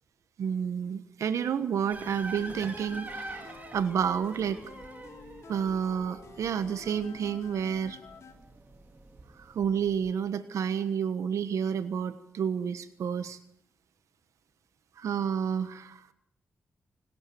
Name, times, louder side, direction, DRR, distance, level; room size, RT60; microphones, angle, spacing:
voice 1, 0.4-4.6 5.5-8.0 9.4-13.4 15.0-16.1, right 7 dB, 90° right, 11 dB, 1.3 m, -30 dB
sound 1, 1.9-10.1, right 2 dB, 30° right, 3.2 m, -45 dB
sound 2, 2.4-8.3, left 6 dB, 70° left, 3.2 m, -50 dB
28.5 x 13.0 x 9.4 m, 0.73 s
cardioid pair, 95°, 5 cm